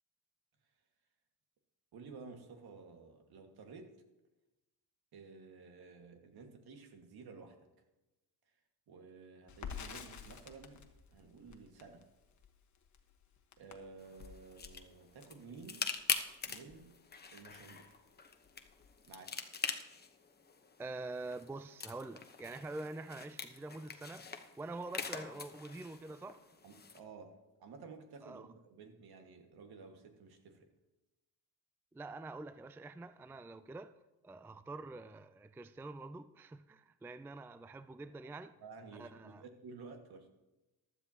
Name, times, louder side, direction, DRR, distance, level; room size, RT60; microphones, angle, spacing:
voice 1, 1.9-3.9 5.1-7.7 8.9-10.9 11.1-12.1 13.6-15.9 16.5-17.0 17.3-18.0 19.1-19.5 26.6-30.7 38.6-40.3, right 4 dB, 70° right, 1.9 m, -53 dB
Crackle, 9.5-17.6 17.9-18.0 18.3-19.1, left 7 dB, 45° left, 1.3 m, -51 dB
sound 1, 14.0-27.0, left 5 dB, 25° left, 1.0 m, -44 dB
voice 2, 20.8-26.4 28.2-28.5 31.9-33.9 34.2-38.5 39.0-39.4, right 2 dB, 5° right, 0.3 m, -46 dB
15.0 x 12.0 x 2.9 m
cardioid pair, 90°, 39 cm